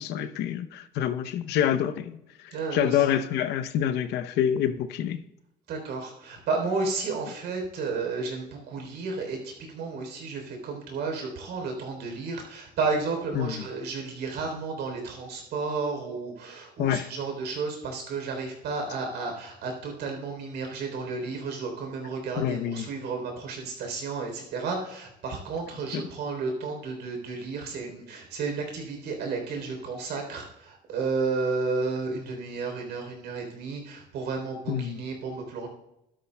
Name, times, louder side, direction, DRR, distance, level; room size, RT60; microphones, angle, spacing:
voice 1, 0.0-2.2 2.4-5.2 13.3-13.6 16.8-17.1 22.4-22.9 25.9-26.0 34.7-35.0, left 9 dB, 80° left, 0.7 m, -27 dB
voice 2, 2.5-3.0 5.7-35.7, right 4 dB, 75° right, 3.5 m, -32 dB
12.5 x 12.5 x 2.2 m
cardioid pair, 110°, 17 cm